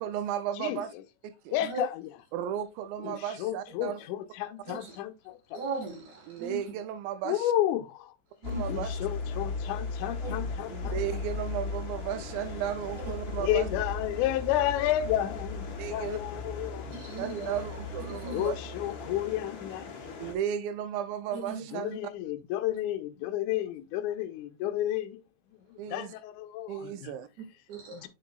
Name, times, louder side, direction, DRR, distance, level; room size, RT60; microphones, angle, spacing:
voice 1, 0.0-0.9 1.2-1.6 2.3-4.0 6.3-7.5 8.5-8.9 10.7-13.7 15.8-16.2 17.2-18.6 20.2-22.0 25.8-26.1 26.7-27.3, right 9 dB, 80° right, 2.3 m, -34 dB
voice 2, 1.5-1.9 3.0-5.6 7.3-8.1 8.7-11.0 13.4-16.9 18.3-20.1 21.7-25.2 25.5-27.1 28.0-28.1, left 13 dB, 80° left, 1.9 m, -31 dB
voice 3, 4.6-5.0 5.5-6.7 8.4-8.9 10.2-10.4 10.8-11.2 12.9-13.5 16.8-17.6 18.0-18.5 21.3-21.6 27.4-28.1, right 3 dB, 60° right, 2.8 m, -39 dB
sound 1, 8.4-20.3, left 3 dB, 60° left, 1.2 m, -37 dB
7.0 x 6.7 x 2.3 m
omnidirectional pair, 4.2 m